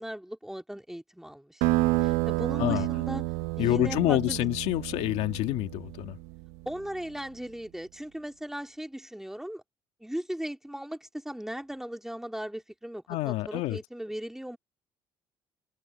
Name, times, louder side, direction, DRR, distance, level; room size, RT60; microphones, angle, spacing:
voice 1, 0.0-3.2 3.6-4.5 6.7-9.6 10.0-14.6, equal, 5° right, 3.7 m, -38 dB
sound 1, 1.6-6.7, right 19 dB, 90° right, 1.2 m, -30 dB
voice 2, 3.6-6.2 13.1-13.8, left 16 dB, 80° left, 2.0 m, -27 dB
supercardioid pair, 75°, 11 cm